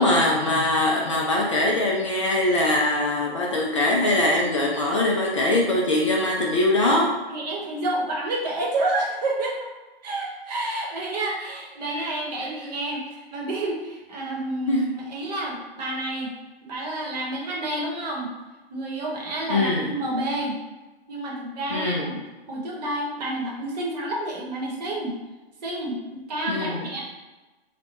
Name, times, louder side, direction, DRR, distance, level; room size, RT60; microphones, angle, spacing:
voice 1, 0.0-7.1 14.7-14.9 19.5-19.9 21.7-22.2 26.5-26.8, left 2 dB, 30° left, -2 dB, 0.4 m, -22 dB
voice 2, 7.3-9.7 10.0-16.3 16.6-18.3 18.7-20.5 21.1-22.2 22.5-25.1 25.6-27.0, right 2 dB, 40° right, -2 dB, 1.0 m, -29 dB
3.3 x 2.2 x 4.0 m, 1.2 s
figure-of-eight pair, 135°, 32 cm